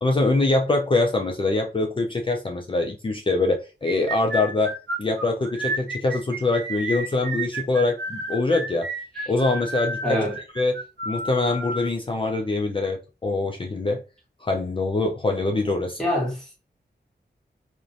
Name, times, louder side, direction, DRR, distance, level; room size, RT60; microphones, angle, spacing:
voice 1, 0.0-8.9 9.3-10.2 10.6-10.7 11.0-14.0 14.4-16.0, left 2 dB, 30° left, 0.4 m, -24 dB
sound 1, 3.8-11.9, right 2 dB, 75° right, 0.6 m, -31 dB
voice 2, 10.0-10.3 16.0-16.6, left 1 dB, 5° left, 1.2 m, -25 dB
2.4 x 2.2 x 2.5 m
wide cardioid pair, 85°, 18 cm